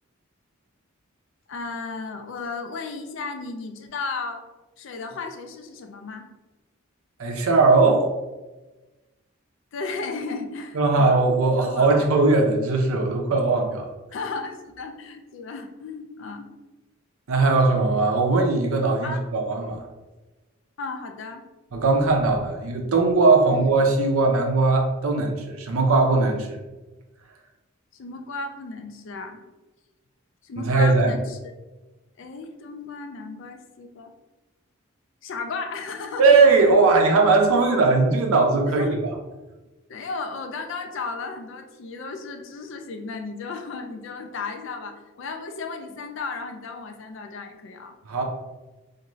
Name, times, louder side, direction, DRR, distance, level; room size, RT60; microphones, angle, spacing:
voice 1, 1.5-4.5 4.8-6.3 9.7-11.1 11.5-12.1 14.1-16.5 19.0-19.3 20.8-21.4 23.5-23.6 27.9-29.4 30.4-31.5 32.2-34.1 35.2-36.2 38.6-39.0 39.9-48.0, left 4 dB, 55° left, 5 dB, 0.3 m, -34 dB
voice 2, 7.2-8.1 10.7-13.9 17.3-19.8 21.7-26.6 30.6-31.1 36.2-39.0 48.0-48.2, right 3 dB, 75° right, 2 dB, 0.5 m, -19 dB
2.5 x 2.5 x 3.0 m, 1.1 s
head